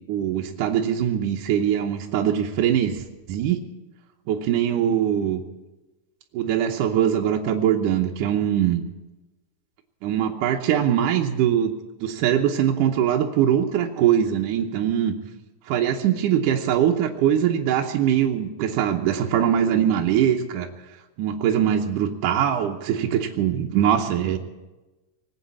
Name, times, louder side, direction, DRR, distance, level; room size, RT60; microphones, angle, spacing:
voice 1, 0.1-3.6 4.3-5.4 6.3-8.8 10.0-11.7 12.0-15.1 15.7-20.7 21.2-24.4, right 9 dB, 80° right, 2 dB, 2.4 m, -22 dB
19.5 x 8.4 x 8.4 m, 1.1 s
omnidirectional pair, 3.8 m